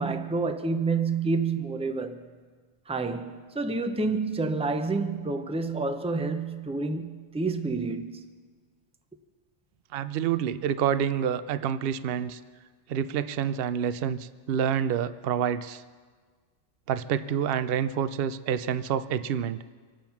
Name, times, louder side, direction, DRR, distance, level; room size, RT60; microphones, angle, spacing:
voice 1, 0.0-2.2 2.9-8.2, right 3 dB, 5° right, 0.6 m, -29 dB
voice 2, 9.9-12.4 12.9-15.8 16.9-19.6, right 8 dB, 60° right, 0.7 m, -28 dB
26.5 x 9.0 x 5.8 m
omnidirectional pair, 1.3 m